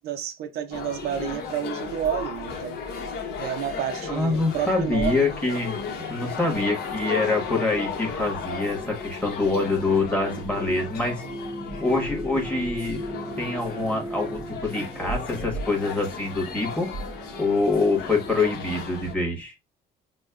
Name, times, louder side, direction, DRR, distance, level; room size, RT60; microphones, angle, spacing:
voice 1, 0.0-2.8 3.4-5.3 6.4-6.7 11.7-11.8, right 9 dB, 70° right, 0.5 m, -30 dB
sound 1, 0.7-19.1, left 4 dB, 70° left, 1.0 m, -35 dB
sound 2, 4.0-18.8, right 1 dB, 15° right, 0.9 m, -41 dB
voice 2, 4.1-5.8 6.1-11.2 11.8-16.9 17.4-19.5, left 3 dB, 10° left, 1.3 m, -25 dB
6.1 x 2.2 x 2.3 m
cardioid pair, 110°, 17 cm